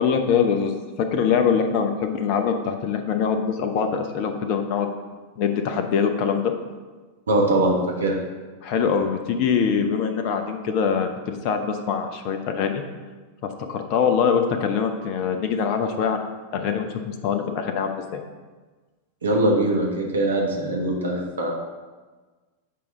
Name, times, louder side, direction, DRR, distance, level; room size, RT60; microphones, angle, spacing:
voice 1, 0.0-4.9 5.4-6.5 8.6-12.8 13.4-16.2 16.5-18.2, left 6 dB, 45° left, 6 dB, 0.6 m, -23 dB
voice 2, 7.3-8.2 19.2-21.5, right 1 dB, 70° right, 0 dB, 1.3 m, -22 dB
8.5 x 4.8 x 3.6 m, 1.3 s
figure-of-eight pair, 90°, 0 cm